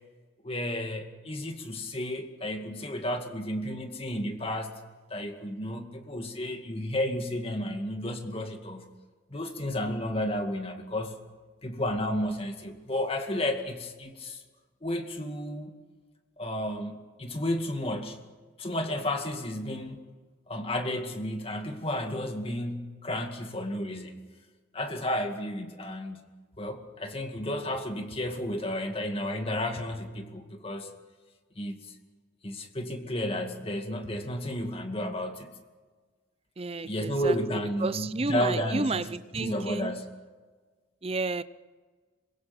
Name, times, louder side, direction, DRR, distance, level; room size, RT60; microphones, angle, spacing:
voice 1, 0.4-4.8 5.1-8.9 9.3-11.2 11.6-14.4 14.8-15.7 16.4-18.2 18.6-20.0 20.5-24.2 24.7-26.3 26.6-30.9 31.6-31.9 32.4-35.5 36.8-40.1, left 1 dB, 30° left, 2.2 m, -32 dB
voice 2, 36.6-37.4 37.8-39.9 41.0-41.4, right 3 dB, 30° right, 0.6 m, -31 dB
26.0 x 22.5 x 6.1 m
head